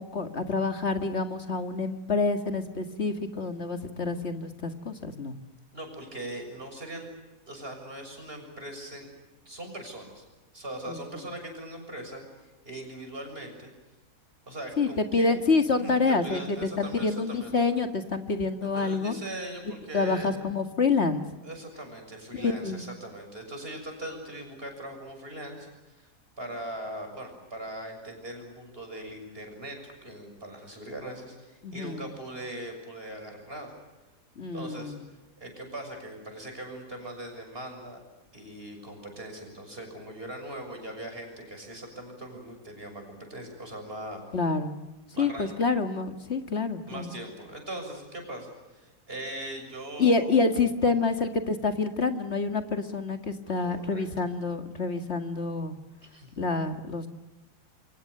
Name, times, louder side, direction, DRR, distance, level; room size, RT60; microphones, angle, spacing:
voice 1, 0.0-5.4 10.9-11.0 14.8-19.2 19.9-21.2 22.3-22.8 31.6-32.1 34.4-35.0 44.3-44.7 45.2-47.1 50.0-55.8 56.4-57.1, left 4 dB, 40° left, 7 dB, 2.1 m, -27 dB
voice 2, 5.7-7.1 7.5-9.1 9.5-10.2 10.5-13.7 14.5-15.3 15.8-17.5 18.6-20.3 21.4-26.1 26.4-33.7 34.5-35.0 35.4-38.0 38.3-44.2 45.1-45.6 46.9-50.4 53.6-54.1 56.0-56.3, right 1 dB, 35° right, 4 dB, 7.0 m, -40 dB
28.5 x 25.0 x 6.7 m, 1.1 s
omnidirectional pair, 1.7 m